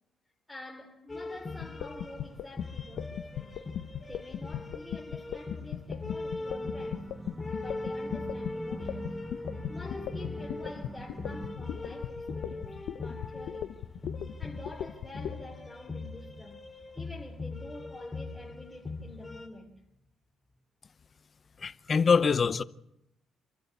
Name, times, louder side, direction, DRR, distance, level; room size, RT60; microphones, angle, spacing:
voice 1, 0.5-3.6 4.1-7.1 7.6-9.1 9.7-13.8 14.4-16.6 16.9-19.8, left 1 dB, 10° left, 3.3 m, -48 dB
sound 1, 1.1-19.5, left 3 dB, 25° left, 3.9 m, -40 dB
sound 2, 1.6-15.4, left 11 dB, 80° left, 1.0 m, -37 dB
sound 3, 6.4-11.6, right 2 dB, 20° right, 1.2 m, -44 dB
voice 2, 21.6-22.6, left 5 dB, 40° left, 0.8 m, -24 dB
27.0 x 13.5 x 8.4 m
cardioid pair, 90°, 0 cm